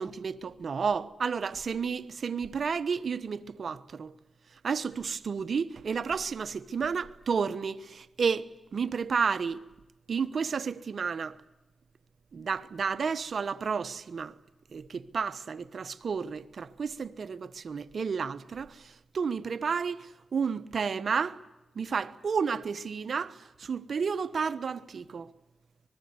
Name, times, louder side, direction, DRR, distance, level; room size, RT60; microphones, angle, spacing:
voice 1, 0.0-4.1 4.5-9.6 10.1-11.4 12.3-14.3 14.7-21.4 21.7-25.3, right 5 dB, 65° right, 1.1 m, -31 dB
25.5 x 21.0 x 9.6 m
cardioid pair, 70°, 0 cm